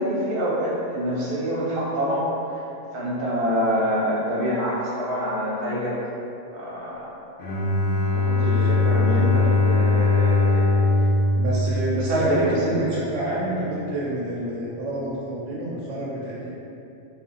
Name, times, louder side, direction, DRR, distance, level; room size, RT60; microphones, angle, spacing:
voice 1, 0.0-2.6 2.9-6.0 6.5-7.2 8.1-10.9 12.0-12.5, equal, 50° right, -7 dB, 1.0 m, -26 dB
Bowed string instrument, 7.4-12.3, left 3 dB, 65° left, 0.9 m, -20 dB
voice 2, 9.0-9.3 11.3-16.5, right 1 dB, 75° right, -6 dB, 0.9 m, -29 dB
2.5 x 2.4 x 3.7 m, 2.7 s
omnidirectional pair, 1.3 m